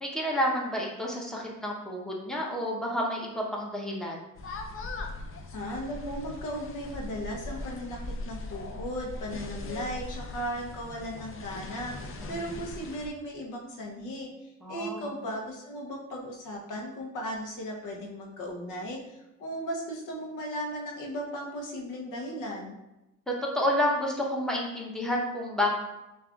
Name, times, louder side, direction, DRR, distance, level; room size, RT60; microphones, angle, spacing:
voice 1, 0.0-4.2 12.2-12.6 14.6-15.1 23.3-25.7, left 1 dB, ahead, -2 dB, 0.9 m, -30 dB
sound 1, 4.4-13.1, left 2 dB, 45° left, 0.6 m, -40 dB
voice 2, 5.5-12.0 12.3-14.3 14.7-22.7, equal, 85° left, 0 dB, 0.9 m, -36 dB
6.6 x 2.6 x 2.4 m, 0.95 s
cardioid pair, 90°, 30 cm